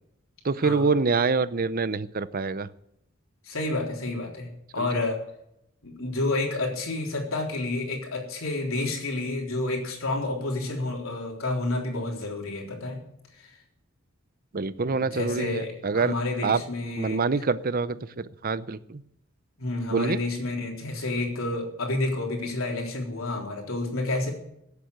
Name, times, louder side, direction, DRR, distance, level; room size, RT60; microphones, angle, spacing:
voice 1, 0.4-2.7 4.8-4.9 14.5-16.1 16.4-16.6 17.0-19.0 19.9-20.2, right 4 dB, 45° right, 15 dB, 0.7 m, -26 dB
voice 2, 3.4-5.2 5.8-13.0 15.0-17.2 19.6-24.3, left 2 dB, 85° left, 0 dB, 3.8 m, -30 dB
15.0 x 8.5 x 8.1 m, 0.78 s
head